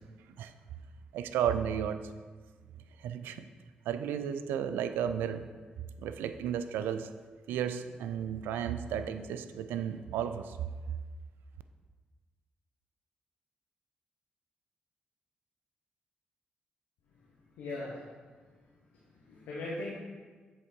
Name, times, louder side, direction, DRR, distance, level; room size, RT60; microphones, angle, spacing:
voice 1, 1.1-2.1 3.0-3.5 3.9-5.5 6.0-7.1 7.5-10.6, right 9 dB, 85° right, 10 dB, 0.3 m, -33 dB
voice 2, 17.6-18.4 19.1-19.9, left 2 dB, 85° left, -6 dB, 1.1 m, -40 dB
7.6 x 3.7 x 4.5 m, 1.4 s
supercardioid pair, 45°, 3 cm